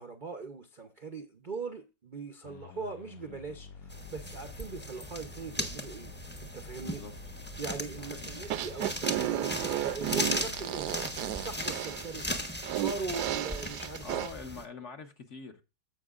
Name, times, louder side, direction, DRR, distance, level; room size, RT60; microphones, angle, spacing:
voice 1, 0.0-6.1 6.4-7.0 7.6-11.0 11.4-12.3 12.7-14.2, right 4 dB, 50° right, 0.5 m, -40 dB
sound 1, 2.4-11.5, left 4 dB, 70° left, 0.9 m, -49 dB
sound 2, 3.9-14.6, equal, 10° left, 0.6 m, -38 dB
voice 2, 6.8-7.2 7.9-8.3 14.0-15.6, left 4 dB, 50° left, 1.1 m, -44 dB
sound 3, 8.4-14.3, right 13 dB, 75° right, 1.2 m, -33 dB
15.5 x 5.5 x 2.4 m
omnidirectional pair, 1.9 m